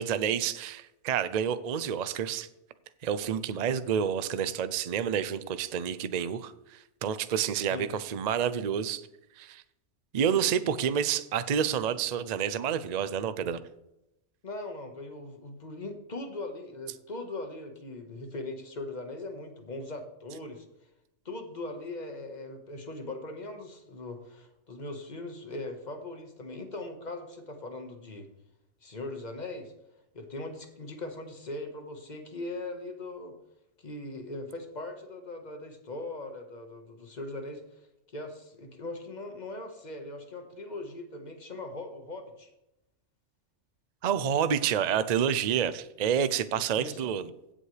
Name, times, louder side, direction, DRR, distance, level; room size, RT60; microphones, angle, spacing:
voice 1, 0.0-2.5 3.0-9.1 9.4-9.6 10.1-13.6 44.0-47.3, right 8 dB, 50° right, 13 dB, 0.5 m, -29 dB
voice 2, 14.4-20.6 21.2-28.3 28.8-29.7 30.1-33.3 33.8-37.9 38.1-42.5 46.5-47.0, left 2 dB, 40° left, 5 dB, 1.5 m, -40 dB
16.0 x 7.7 x 3.3 m, 0.88 s
omnidirectional pair, 1.2 m